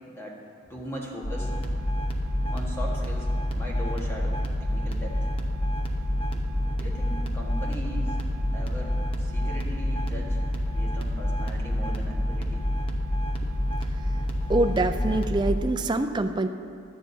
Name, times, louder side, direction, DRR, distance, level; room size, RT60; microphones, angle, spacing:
voice 1, 0.1-0.4 0.7-1.5 2.5-5.2 6.3-8.2 8.5-10.4 10.7-12.6, equal, 10° left, -3 dB, 1.5 m, -39 dB
sound 1, 1.2-15.5, left 1 dB, 30° left, 0.9 m, -28 dB
voice 2, 14.5-16.5, right 2 dB, 20° right, 7 dB, 0.4 m, -25 dB
16.5 x 11.5 x 2.8 m, 2.4 s
head